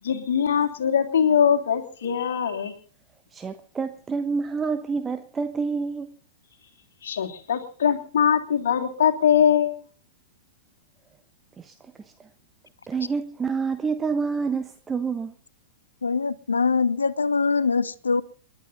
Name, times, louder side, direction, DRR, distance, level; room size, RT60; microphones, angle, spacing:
voice 1, 0.0-2.7 7.0-9.8, left 8 dB, 60° left, 3.2 m, -22 dB
voice 2, 3.3-6.2 11.6-12.3 12.9-15.3, right 5 dB, 15° right, 1.0 m, -28 dB
voice 3, 16.0-18.2, left 4 dB, 80° left, 0.8 m, -23 dB
29.0 x 11.5 x 4.0 m
figure-of-eight pair, 100°, 0 cm